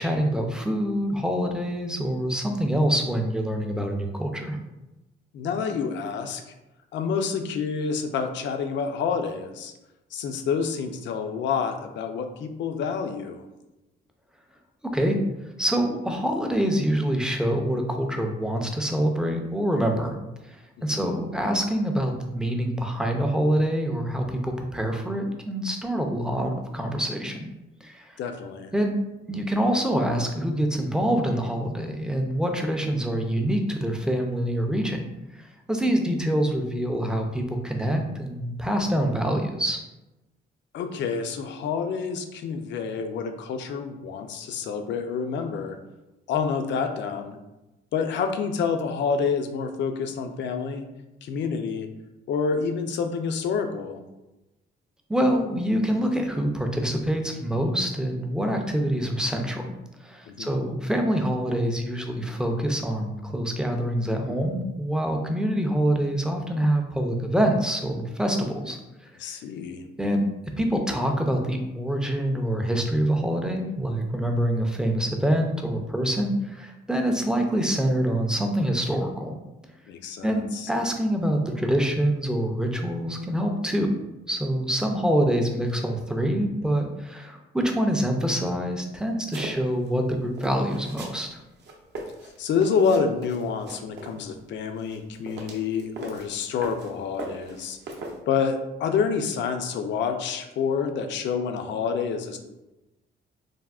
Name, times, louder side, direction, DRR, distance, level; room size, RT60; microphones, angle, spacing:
voice 1, 0.0-4.6 14.8-15.2 15.6-20.2 20.4-27.5 27.8-28.2 28.7-28.9 29.3-35.0 35.3-39.8 55.1-59.7 60.0-68.8 70.0-70.3 70.6-79.4 80.2-83.9 84.3-91.4, equal, 5° right, 3 dB, 0.4 m, -25 dB
voice 2, 5.3-6.4 6.9-9.7 10.1-13.4 20.8-21.2 28.2-28.7 40.7-45.8 46.3-47.4 47.9-50.9 51.2-51.9 52.3-54.0 60.3-60.6 69.2-69.8 79.9-80.7 92.4-97.8 98.3-102.4, left 6 dB, 65° left, 6 dB, 0.4 m, -28 dB
sound 1, 89.3-89.9 90.4-91.2 91.5-94.2 94.8-96.9 97.2-98.2, right 2 dB, 60° right, 0.6 m, -38 dB
3.4 x 2.0 x 2.3 m, 0.99 s
cardioid pair, 90°, 20 cm